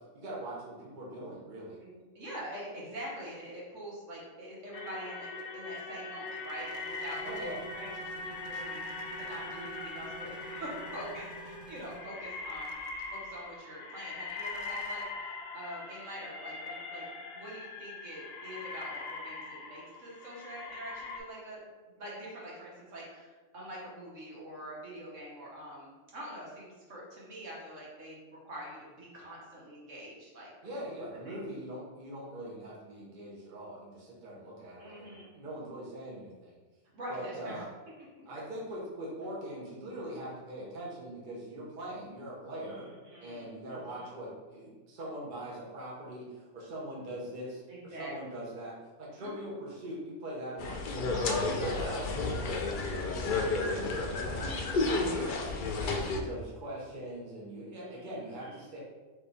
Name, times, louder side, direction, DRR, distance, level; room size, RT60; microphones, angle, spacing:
voice 1, 0.1-1.8 7.2-7.6 30.6-36.5 37.1-37.6 38.2-42.9 43.2-51.1 51.5-55.0 55.8-58.8, right 1 dB, 40° right, -5 dB, 1.0 m, -42 dB
voice 2, 1.8-12.8 13.1-17.1 17.3-21.6 22.0-30.5 31.2-31.4 34.8-35.4 36.9-37.6 38.3-38.4 42.6-44.1 47.7-48.3 49.2-49.5 51.1-52.1 52.7-53.5 54.8-55.4 57.7-58.7, equal, 70° right, -5 dB, 1.6 m, -44 dB
sound 1, 4.7-21.2, left 3 dB, 90° left, 1.1 m, -41 dB
sound 2, 7.2-12.0, right 6 dB, 90° right, 1.0 m, -52 dB
sound 3, 50.6-56.2, left 3 dB, 60° left, 0.5 m, -31 dB
3.5 x 3.3 x 4.0 m, 1.3 s
omnidirectional pair, 1.3 m